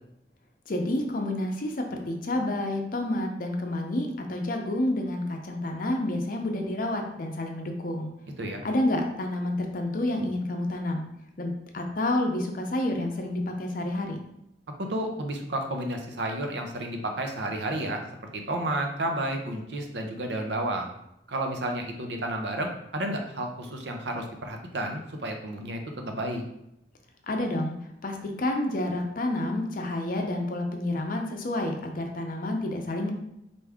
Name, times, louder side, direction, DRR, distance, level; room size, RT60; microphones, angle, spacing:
voice 1, 0.7-8.1 8.6-11.0 11.4-14.2 27.3-27.7 28.0-33.1, left 1 dB, 50° left, 3 dB, 0.6 m, -29 dB
voice 2, 14.8-18.0 18.3-20.9 21.3-26.4, right 1 dB, 80° right, 3 dB, 0.7 m, -31 dB
4.5 x 2.6 x 3.5 m, 0.80 s
head